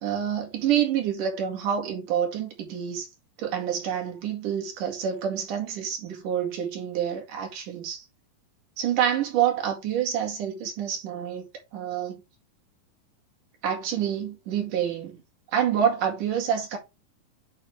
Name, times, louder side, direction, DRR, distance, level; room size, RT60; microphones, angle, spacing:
voice 1, 0.0-3.1 3.4-8.1 8.8-12.2 13.6-15.2 15.5-16.8, right 9 dB, 65° right, 3.8 m, -27 dB
9.0 x 4.3 x 3.1 m
omnidirectional pair, 4.2 m